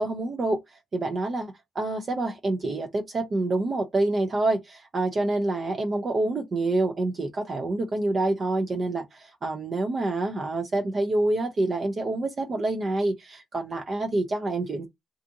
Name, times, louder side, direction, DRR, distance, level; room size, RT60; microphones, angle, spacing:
voice 1, 0.0-14.9, right 2 dB, 40° right, 0.4 m, -27 dB
2.5 x 2.4 x 2.6 m
cardioid pair, 90°, 0 cm